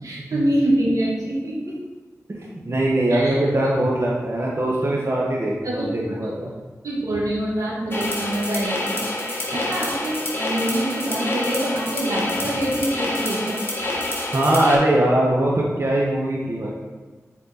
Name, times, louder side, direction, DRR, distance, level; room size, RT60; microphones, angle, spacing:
voice 1, 0.0-1.8 3.1-3.4 5.6-6.2 6.8-13.6, right 1 dB, 80° right, -5 dB, 2.0 m, -25 dB
voice 2, 2.3-6.5 14.3-16.7, right 1 dB, 50° right, -4 dB, 1.4 m, -21 dB
sound 1, 7.9-14.7, left 1 dB, 40° left, 1.7 m, -27 dB
7.2 x 4.4 x 4.2 m, 1.3 s
cardioid pair, 40°, 6 cm